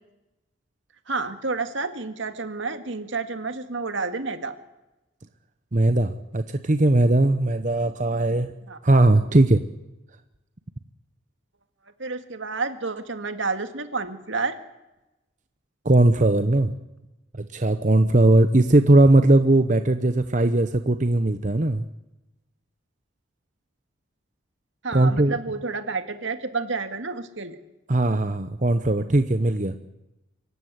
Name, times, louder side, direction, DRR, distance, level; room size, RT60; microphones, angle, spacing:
voice 1, 1.1-4.6 8.7-8.8 12.0-14.6 24.8-27.6, right 4 dB, 75° right, 9 dB, 2.0 m, -30 dB
voice 2, 5.7-8.5 8.8-9.6 15.8-16.7 17.3-21.8 24.9-25.4 27.9-29.8, right 2 dB, 40° right, 9 dB, 0.8 m, -19 dB
25.5 x 15.0 x 9.6 m, 0.99 s
head